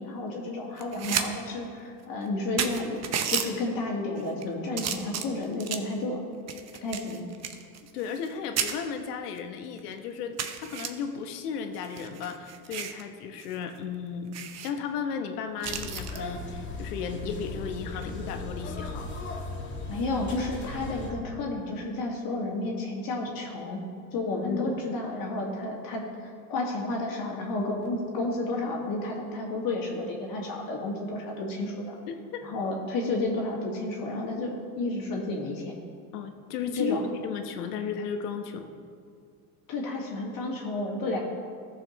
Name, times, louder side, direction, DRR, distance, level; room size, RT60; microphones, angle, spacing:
voice 1, 0.0-3.0 3.3-6.2 6.8-7.2 19.9-23.8 24.1-32.0 32.4-35.7 36.7-37.1 39.7-41.2, left 2 dB, 45° left, -1 dB, 2.0 m, -31 dB
sound 1, 0.8-1.3 1.6-1.7 2.3-2.4 2.6-3.5 4.2-4.4 4.8-5.9 6.5-8.3 8.6-8.7 9.4-9.5 9.8-9.9 10.4-10.9 11.7-13.0 13.4-13.5 13.8-13.9 14.3-14.7 15.6-16.2 17.9-18.2, right 8 dB, 35° right, 0.9 m, -32 dB
voice 2, 7.9-14.4 14.6-19.1 24.4-24.8 32.1-32.4 36.1-37.0 37.2-38.7, left 6 dB, 80° left, 6 dB, 1.1 m, -34 dB
sound 2, 15.6-21.1, left 2 dB, 25° left, 1.7 m, -37 dB
14.5 x 6.9 x 3.1 m, 2.2 s
hypercardioid pair, 95°, 46 cm